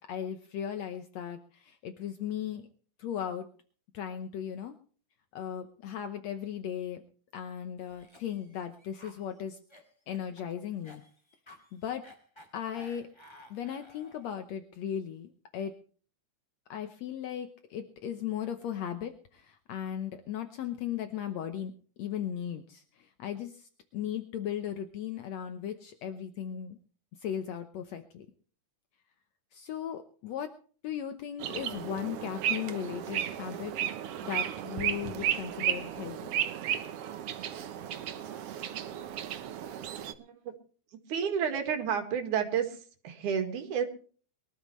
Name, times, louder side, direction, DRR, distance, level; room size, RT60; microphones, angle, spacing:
voice 1, 0.1-2.7 3.0-3.5 3.9-4.8 5.3-7.0 7.3-9.6 10.1-11.0 11.7-12.0 12.5-13.1 13.5-15.8 16.7-21.7 22.0-26.8 27.2-28.3 29.5-30.5 30.8-33.7 34.2-36.3, left 9 dB, 70° left, 8 dB, 2.0 m, -37 dB
Cough, 7.8-14.4, left 1 dB, 10° left, 2.1 m, -55 dB
sound 1, 31.4-40.1, right 10 dB, 65° right, 1.7 m, -34 dB
voice 2, 40.2-40.5 41.1-43.9, right 7 dB, 85° right, 6 dB, 3.3 m, -31 dB
23.0 x 13.0 x 3.2 m, 0.42 s
omnidirectional pair, 3.4 m